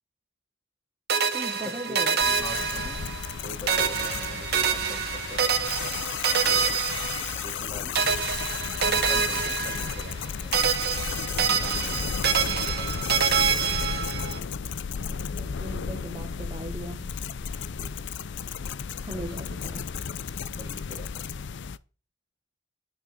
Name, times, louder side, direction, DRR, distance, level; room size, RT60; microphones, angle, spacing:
sound 1, 1.1-3.4 3.7-7.7 8.0-10.3 10.5-14.4, right 6 dB, 55° right, 1.7 m, -26 dB
voice 1, 1.3-2.2 15.0-17.3 19.0-19.9, right 1 dB, 25° right, 4 dB, 1.2 m, -38 dB
voice 2, 1.9-5.7 6.4-6.8 7.3-8.0 8.8-10.7 11.3-12.1 12.3-12.9 17.7-17.9 19.1-19.4 20.5-21.3, equal, 20° left, 2 dB, 3.1 m, -43 dB
sound 2, 2.2-21.8, left 6 dB, 60° left, 0.5 m, -33 dB
10.0 x 6.4 x 7.1 m, 0.36 s
head